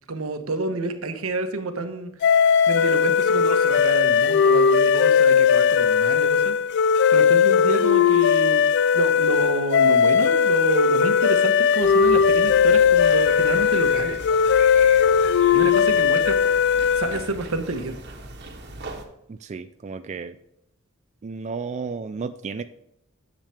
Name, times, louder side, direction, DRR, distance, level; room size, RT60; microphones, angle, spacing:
voice 1, 0.1-2.1 2.7-6.5 7.1-8.6 8.9-14.2 15.5-16.4 16.9-18.0, right 2 dB, 80° right, 8 dB, 1.1 m, -28 dB
sound 1, 2.2-17.3, left 7 dB, 55° left, 0.3 m, -18 dB
sound 2, 11.8-19.1, right 3 dB, 50° right, 1.4 m, -39 dB
voice 2, 19.3-20.4 21.2-22.6, right 4 dB, 35° right, 10 dB, 0.3 m, -33 dB
10.5 x 7.4 x 3.4 m, 0.80 s
head